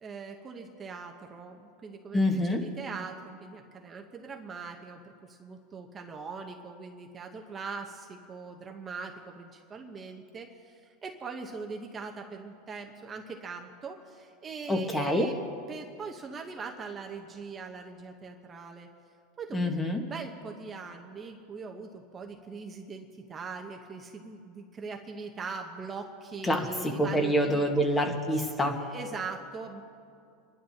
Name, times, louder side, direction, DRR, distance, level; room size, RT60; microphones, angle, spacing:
voice 1, 0.0-1.5 1.8-2.2 2.6-3.1 3.5-5.0 5.4-7.8 8.3-9.1 9.7-10.5 11.0-12.1 12.4-14.0 14.4-15.3 15.7-18.9 19.4-21.9 22.1-23.0 23.3-26.1 26.3-27.6 28.9-29.8, right 5 dB, 25° right, 3 dB, 0.9 m, -40 dB
voice 2, 2.1-2.6 14.7-15.3 19.5-20.0 26.4-28.8, equal, 15° left, 3 dB, 1.5 m, -26 dB
29.0 x 11.5 x 2.9 m, 2.4 s
supercardioid pair, 130°, 0 cm